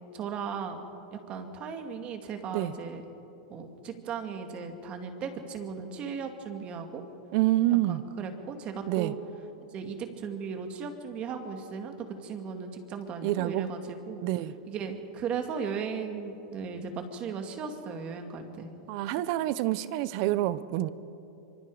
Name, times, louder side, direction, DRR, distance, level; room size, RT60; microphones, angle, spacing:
voice 1, 0.1-0.9 1.1-3.0 3.5-7.0 7.9-9.2 9.7-14.3 14.7-18.7, right 6 dB, 30° right, 6 dB, 2.3 m, -36 dB
voice 2, 7.3-8.0 8.9-9.1 13.2-13.7 14.2-14.5 18.9-20.9, right 15 dB, 50° right, 16 dB, 0.8 m, -27 dB
25.5 x 23.5 x 5.0 m, 2.9 s
supercardioid pair, 135°, 4 cm